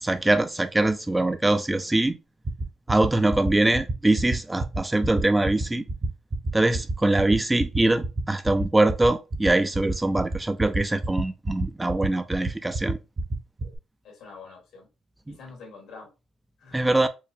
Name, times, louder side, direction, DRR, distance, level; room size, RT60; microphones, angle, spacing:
voice 1, 0.0-2.2 2.9-5.8 6.5-13.0 15.3-15.4 16.7-17.1, right 2 dB, 15° right, 0.3 m, -23 dB
sound 1, 2.4-13.8, right 2 dB, 30° right, 0.8 m, -27 dB
voice 2, 14.0-14.9 15.3-16.1 16.6-17.0, left 4 dB, 80° left, 1.9 m, -46 dB
4.5 x 2.1 x 2.6 m
cardioid pair, 90°, 0 cm